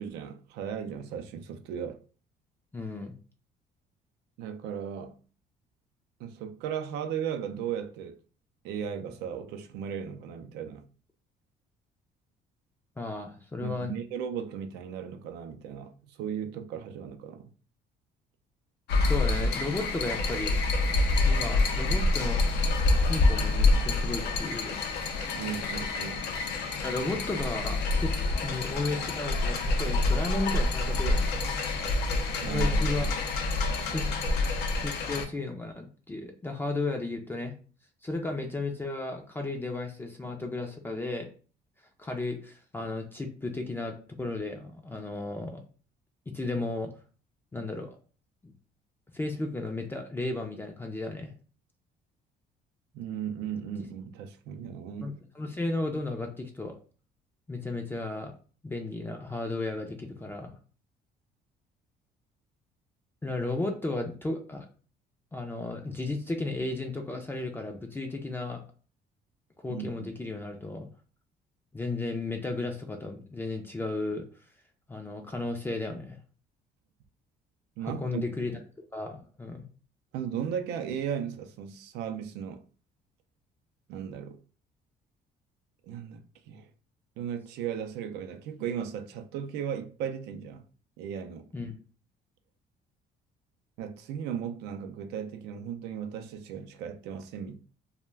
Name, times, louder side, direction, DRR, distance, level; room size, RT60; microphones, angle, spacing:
voice 1, 0.0-2.0 4.4-5.2 6.2-8.2 8.6-10.9 13.6-17.5 25.3-26.3 32.4-33.1 52.9-55.1 69.7-70.0 77.8-78.2 80.1-82.6 83.9-84.4 85.8-86.7 87.2-90.6 91.0-91.5 93.8-97.6, right 8 dB, 85° right, 0.4 m, -36 dB
voice 2, 2.7-3.1 13.0-13.9 19.1-20.6 21.2-22.4 23.0-24.7 26.8-28.1 28.4-31.4 32.5-33.1 33.8-34.1 34.7-37.6 38.0-41.3 42.0-45.6 46.3-46.9 47.5-48.0 48.4-48.5 49.1-51.3 55.0-56.7 57.5-58.3 58.6-60.5 63.2-64.7 65.3-68.6 69.6-70.9 71.7-74.2 74.9-76.2 77.8-79.6 91.5-91.8, left 2 dB, 15° left, 0.3 m, -34 dB
sound 1, 18.9-35.3, left 2 dB, 80° left, 0.5 m, -27 dB
2.2 x 2.1 x 3.2 m
cardioid pair, 110°, 17 cm